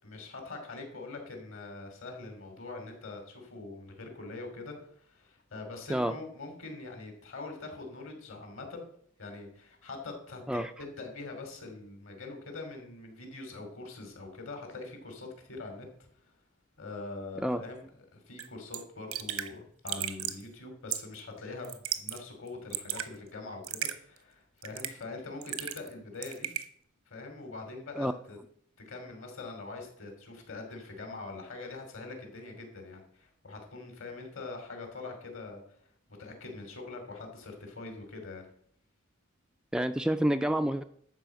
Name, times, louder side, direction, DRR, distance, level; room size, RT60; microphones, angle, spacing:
voice 1, 0.0-8.8 9.2-15.9 16.8-26.5 27.1-28.4 28.9-35.8 36.2-38.5, left 3 dB, 65° left, 4 dB, 2.9 m, -43 dB
Raindrop / Drip, 18.4-18.5 18.7-18.8 19.1-19.5 19.9-20.4 20.9-21.2 21.6-22.2 22.5-23.1 23.6-24.0 24.6-25.0 25.4-25.9 26.2-26.7, right 11 dB, 90° right, 1.1 m, -34 dB
voice 2, 39.7-40.8, right 1 dB, 5° right, 8 dB, 0.3 m, -28 dB
12.0 x 4.8 x 7.7 m, 0.65 s
head